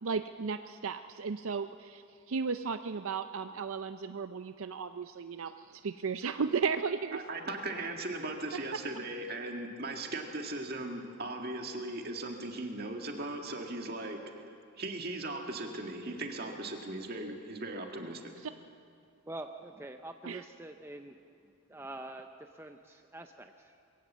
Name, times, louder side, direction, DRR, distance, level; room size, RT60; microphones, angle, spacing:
voice 1, 0.0-7.2 18.4-18.5 20.2-20.4, right 5 dB, 70° right, 10 dB, 0.5 m, -35 dB
voice 2, 7.1-14.2 14.8-18.3, right 2 dB, 45° right, 3 dB, 2.0 m, -38 dB
voice 3, 19.3-21.2 21.7-23.8, right 2 dB, 10° right, 5 dB, 0.6 m, -45 dB
22.0 x 17.5 x 7.4 m, 2.4 s
head